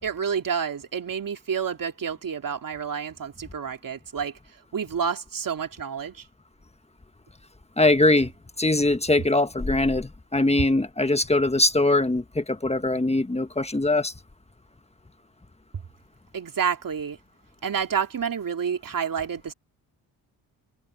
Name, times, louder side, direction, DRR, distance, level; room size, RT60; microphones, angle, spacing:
voice 1, 0.0-6.2 16.3-17.2 17.6-19.5, right 7 dB, 50° right, 3.1 m, -29 dB
voice 2, 7.8-8.3 8.6-14.1, left 2 dB, 15° left, 1.6 m, -22 dB
supercardioid pair, 65°, 44 cm